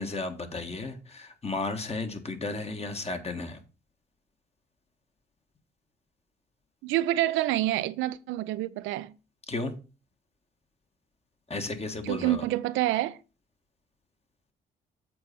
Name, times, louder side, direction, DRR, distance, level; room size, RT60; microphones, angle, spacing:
voice 1, 0.0-3.6 9.5-9.7 11.5-12.4, left 3 dB, 30° left, 1.5 m, -34 dB
voice 2, 6.8-9.1 12.0-13.2, right 15 dB, 85° right, 0.5 m, -27 dB
7.7 x 4.3 x 5.5 m
supercardioid pair, 60°, 20 cm